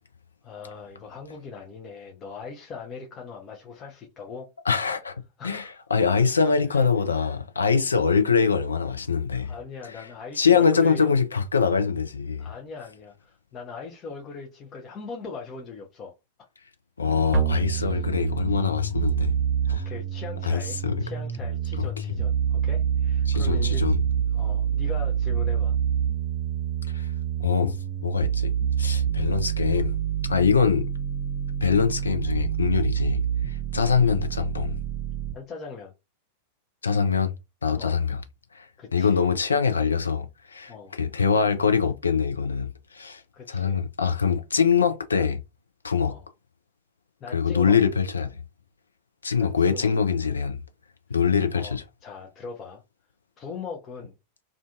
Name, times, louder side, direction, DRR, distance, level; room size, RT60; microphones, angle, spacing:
voice 1, 0.4-4.5 5.4-5.7 6.4-6.9 9.4-11.1 12.4-16.1 17.7-18.1 19.7-23.8 24.3-25.8 35.3-35.9 37.8-38.0 38.8-39.3 40.7-41.0 43.3-43.8 46.1-46.3 47.2-47.8 49.4-49.9 51.1-51.2 51.5-52.8 53.4-54.1, left 4 dB, 30° left, 0.6 m, -40 dB
voice 2, 4.7-5.2 5.4-9.5 10.0-10.1 10.4-12.5 17.0-19.3 19.7-19.9 20.4-21.0 21.8-21.9 23.3-24.0 26.9-27.1 27.4-27.8 28.0-30.0 30.3-30.8 31.6-34.8 36.8-37.4 37.6-38.2 38.5-43.2 43.5-45.4 45.8-46.1 47.3-48.4 49.2-50.6 51.1-51.8, left 6 dB, 75° left, 0.4 m, -23 dB
sound 1, 17.3-35.3, right 8 dB, 35° right, 0.7 m, -27 dB
2.4 x 2.4 x 2.4 m
figure-of-eight pair, 90°, 0 cm